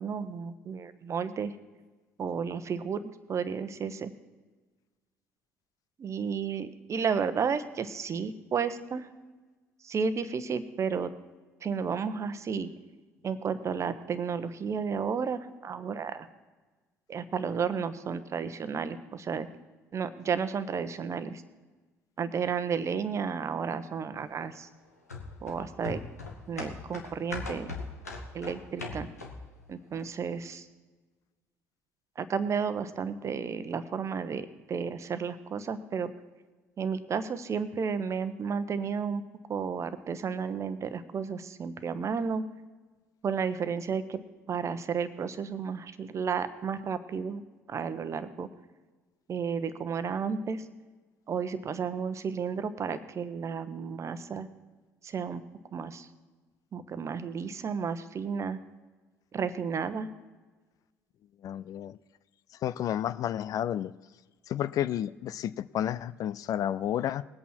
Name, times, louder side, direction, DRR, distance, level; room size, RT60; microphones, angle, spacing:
voice 1, 0.0-1.5 2.2-4.1 6.0-9.1 9.8-11.1 11.6-12.7 13.2-16.3 17.1-19.5 19.9-21.4 22.2-24.7 25.4-26.0 26.5-27.7 28.3-29.1 29.7-30.7 32.2-36.1 36.8-39.2 39.5-42.4 43.2-44.2 44.5-47.4 47.7-48.5 49.3-50.7 51.3-54.5 55.0-55.4 55.7-56.1 56.7-58.6 59.3-60.1, right 6 dB, 35° right, 12 dB, 1.0 m, -32 dB
sound 1, 25.1-29.6 29.9-30.0, left 3 dB, 85° left, 1.5 m, -39 dB
voice 2, 61.4-62.0 62.6-63.9 64.5-67.2, left 11 dB, 45° left, 16 dB, 0.4 m, -31 dB
20.5 x 8.4 x 4.5 m, 1.3 s
figure-of-eight pair, 55°, 8 cm